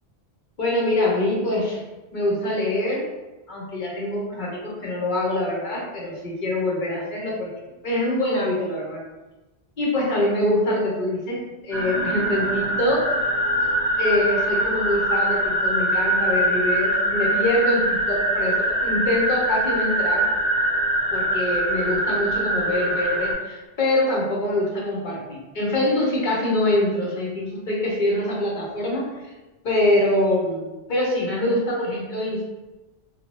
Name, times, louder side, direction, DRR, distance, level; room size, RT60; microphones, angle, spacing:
voice 1, 0.6-1.8 2.1-3.0 3.5-7.5 7.8-9.0 9.8-13.1 14.0-20.3 21.1-29.1 29.6-32.4, left 1 dB, 50° left, -3 dB, 0.8 m, -24 dB
sound 1, 11.7-23.3, right 1 dB, 20° left, 0.6 m, -23 dB
2.6 x 2.2 x 3.0 m, 1.1 s
omnidirectional pair, 1.2 m